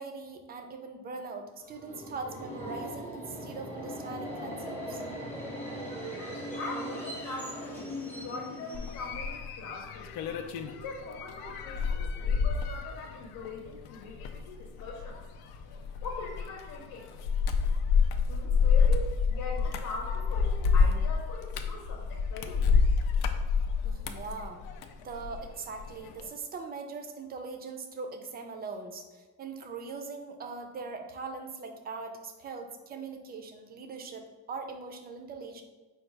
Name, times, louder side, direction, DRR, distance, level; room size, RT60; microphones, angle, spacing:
voice 1, 0.0-5.0 23.8-24.6 24.9-35.6, right 4 dB, 25° right, 5 dB, 0.4 m, -41 dB
Subway metro underground, 1.6-9.4, equal, 5° left, 0.7 m, -39 dB
voice 2, 6.6-7.9 8.1-10.1 10.7-15.2 16.0-17.1 18.3-22.9, left 3 dB, 65° left, -1 dB, 0.9 m, -41 dB
sound 1, 8.7-25.5 25.8-26.2, left 5 dB, 85° left, 0.5 m, -28 dB
5.0 x 2.3 x 4.5 m, 1.3 s
cardioid pair, 160°, 37 cm